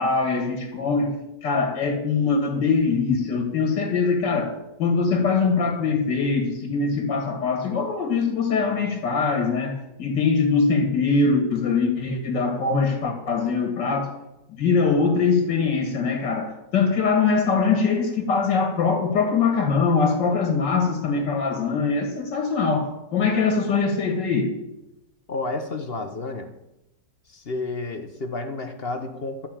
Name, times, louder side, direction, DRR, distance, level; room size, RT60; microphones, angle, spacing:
voice 1, 0.0-14.1 14.5-24.5, left 4 dB, 85° left, 2.3 m, -22 dB
voice 2, 25.3-26.5 27.3-29.5, left 3 dB, 40° left, 1.0 m, -31 dB
12.5 x 5.7 x 8.9 m
omnidirectional pair, 1.9 m